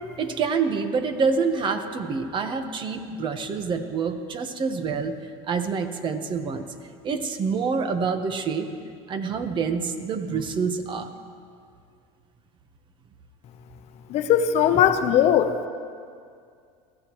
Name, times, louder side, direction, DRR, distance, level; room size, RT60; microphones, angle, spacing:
voice 1, 0.2-5.2 5.5-6.7 7.0-8.7 9.1-11.1, right 5 dB, 35° right, 7 dB, 1.2 m, -27 dB
voice 2, 14.1-15.7, left 9 dB, 50° left, 9 dB, 0.9 m, -19 dB
22.5 x 15.0 x 3.2 m, 2.2 s
supercardioid pair, 115°, 14 cm